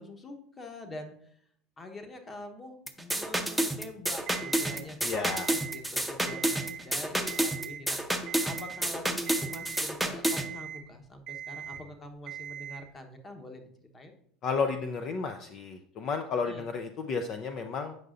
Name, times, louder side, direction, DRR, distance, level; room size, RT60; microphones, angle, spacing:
voice 1, 0.0-1.4 1.8-14.2 16.4-16.7, left 2 dB, 25° left, 6 dB, 1.0 m, -45 dB
sound 1, 2.9-10.5, right 1 dB, ahead, 0.7 m, -30 dB
Alarm, 4.3-4.8 5.3-5.8 6.2-6.8 7.3-7.8 8.3-8.8 9.3-9.8 10.3-10.8 11.3-11.8 12.3-12.8, right 9 dB, 65° right, 0.9 m, -41 dB
voice 2, 5.0-5.5 14.4-18.0, left 5 dB, 50° left, 7 dB, 0.5 m, -32 dB
7.7 x 5.5 x 2.5 m, 0.66 s
hypercardioid pair, 80°, 0 cm